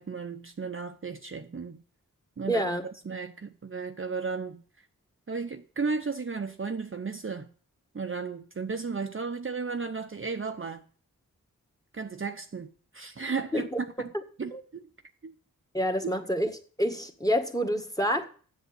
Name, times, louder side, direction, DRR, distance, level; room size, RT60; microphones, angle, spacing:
voice 1, 0.0-1.8 2.4-4.6 5.3-7.5 7.9-10.8 11.9-12.7 12.9-13.7 14.0-14.1 14.4-14.9 15.2-15.3 16.0-16.1, right 4 dB, 40° right, 0.7 m, -34 dB
voice 2, 2.5-2.9 13.5-13.8 14.1-14.2 14.5-14.6 15.7-16.5 16.8-18.2, equal, 10° left, 1.6 m, -27 dB
8.1 x 7.1 x 7.9 m
wide cardioid pair, 55°, 34 cm